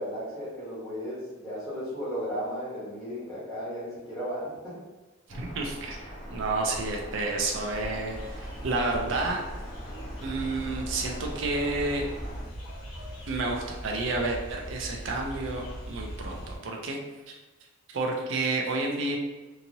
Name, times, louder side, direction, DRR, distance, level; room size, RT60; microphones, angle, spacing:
voice 1, 0.0-4.8, equal, ahead, -13 dB, 1.0 m, -35 dB
Bird vocalization bird call bird song, 5.3-12.4, equal, 35° left, 0.8 m, -41 dB
voice 2, 5.3-9.4 10.2-12.0 13.3-17.0 17.3-17.4 17.9-19.2, right 3 dB, 60° right, 0 dB, 0.4 m, -30 dB
sound 1, 8.1-16.6, equal, 60° left, 1.1 m, -40 dB
2.9 x 2.7 x 2.6 m, 1.2 s
head